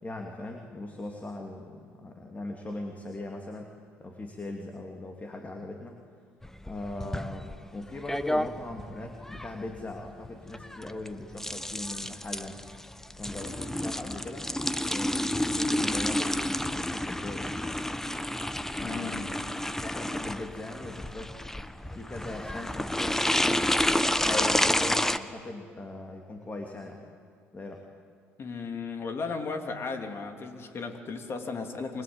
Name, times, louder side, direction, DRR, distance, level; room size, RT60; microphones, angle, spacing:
voice 1, 0.0-3.7 4.0-6.0 6.6-12.6 13.2-17.5 18.8-21.4 21.9-23.5 24.3-27.1 27.5-27.9, left 2 dB, 25° left, 3 dB, 3.0 m, -40 dB
sound 1, 6.4-25.2, left 1 dB, 5° left, 1.1 m, -30 dB
voice 2, 18.8-19.3 24.2-24.6 28.4-32.0, left 4 dB, 45° left, 5 dB, 3.3 m, -35 dB
28.0 x 22.0 x 9.1 m, 2.1 s
supercardioid pair, 70°, 6 cm